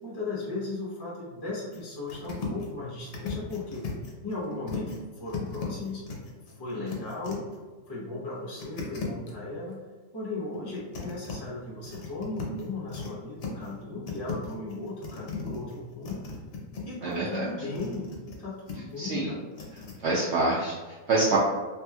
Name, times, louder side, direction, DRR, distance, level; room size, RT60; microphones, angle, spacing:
voice 1, 0.0-3.9 4.2-6.1 6.6-7.5 7.9-9.9 10.1-16.3 16.9-19.4, left 2 dB, 40° left, -6 dB, 0.3 m, -36 dB
sound 1, 1.7-1.8 2.1-2.7 3.0-5.0 5.3-7.6 8.6-9.3 10.5-11.3 11.8-13.1 13.4-13.8 14.1-16.8 17.1-18.4 18.7-19.0 19.5-20.0, left 5 dB, 55° left, 0.7 m, -37 dB
voice 2, 17.0-17.4 19.0-19.3 20.0-21.4, right 3 dB, 65° right, -6 dB, 0.7 m, -26 dB
3.1 x 2.9 x 2.3 m, 1.4 s
omnidirectional pair, 1.5 m